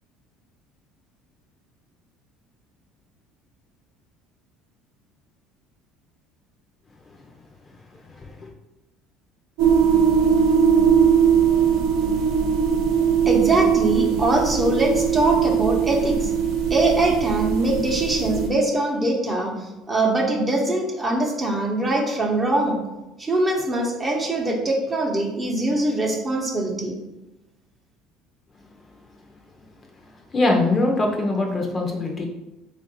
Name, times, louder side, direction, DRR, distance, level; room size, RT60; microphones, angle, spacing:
voice 1, 8.0-8.5 30.3-32.3, left 2 dB, 30° left, 1 dB, 0.7 m, -23 dB
sound 1, 9.6-18.5, right 7 dB, 80° right, 0.7 m, -20 dB
voice 2, 13.3-16.3 16.7-19.5 19.9-22.8 23.2-27.0, right 2 dB, 20° right, 0 dB, 0.8 m, -22 dB
3.6 x 2.5 x 4.2 m, 0.99 s
supercardioid pair, 105°, 0 cm